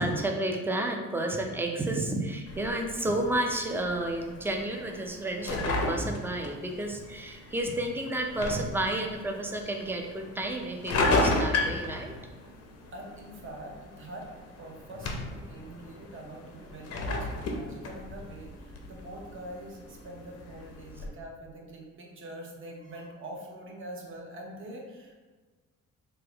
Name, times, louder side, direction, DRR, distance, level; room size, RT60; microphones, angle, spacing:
voice 1, 0.0-12.1, right 1 dB, 5° right, 2 dB, 0.4 m, -31 dB
sound 1, 2.5-21.1, left 2 dB, 55° left, 0.6 m, -34 dB
voice 2, 12.9-14.3 14.6-25.3, right 1 dB, 40° right, 0 dB, 0.8 m, -44 dB
3.4 x 2.1 x 3.3 m, 1.3 s
cardioid pair, 90°, 30 cm